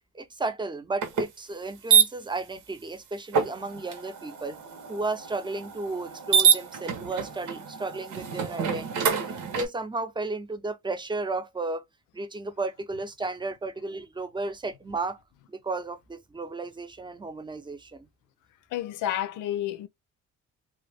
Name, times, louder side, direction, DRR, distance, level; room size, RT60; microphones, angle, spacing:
voice 1, 0.1-4.6 4.9-11.8 12.1-15.2 15.5-18.1, right 3 dB, 15° right, 0.6 m, -34 dB
sound 1, 1.0-1.2 1.9-2.0 3.3-9.7, right 7 dB, 80° right, 1.1 m, -26 dB
voice 2, 18.7-19.9, left 12 dB, 85° left, 0.5 m, -30 dB
2.4 x 2.4 x 3.4 m
cardioid pair, 90°, 30 cm